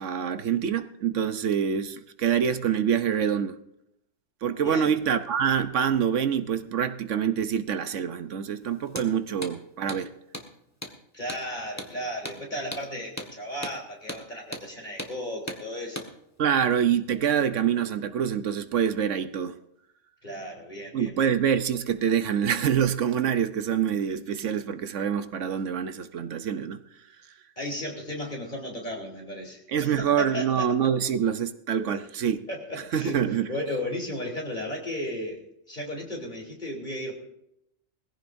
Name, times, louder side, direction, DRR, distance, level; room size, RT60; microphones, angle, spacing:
voice 1, 0.0-3.6 4.4-10.1 16.4-19.6 20.9-26.8 29.7-32.4 32.9-33.5, right 8 dB, 75° right, 10 dB, 1.1 m, -26 dB
voice 2, 4.6-5.0 11.1-16.0 20.2-21.3 27.6-30.7 31.7-31.9 32.5-37.1, left 1 dB, 40° left, -1 dB, 3.6 m, -35 dB
Hammer, 8.9-9.1 9.4-9.6 9.9-10.0 10.3-10.5 10.8-11.0 11.3-11.4 11.8-11.9 12.3-12.4 12.7-12.9 13.2-13.3 13.6-13.8 14.1-14.2 14.5-14.7 15.0-15.1 15.5-15.6 16.0-16.1, left 1 dB, 15° left, 1.5 m, -36 dB
21.0 x 15.5 x 2.7 m, 0.81 s
omnidirectional pair, 1.3 m